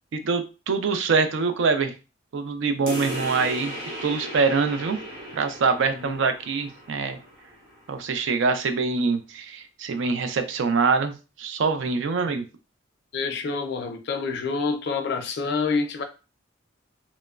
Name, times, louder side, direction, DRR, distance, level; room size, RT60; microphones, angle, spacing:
voice 1, 0.2-1.9 2.3-3.7 4.0-5.0 5.3-7.2 7.9-11.1 11.4-12.4, right 4 dB, 75° right, 0.4 m, -24 dB
sound 1, 2.9-7.9, equal, 50° right, 1.0 m, -36 dB
voice 2, 13.1-16.0, left 4 dB, 60° left, 0.4 m, -27 dB
2.9 x 2.1 x 2.3 m
head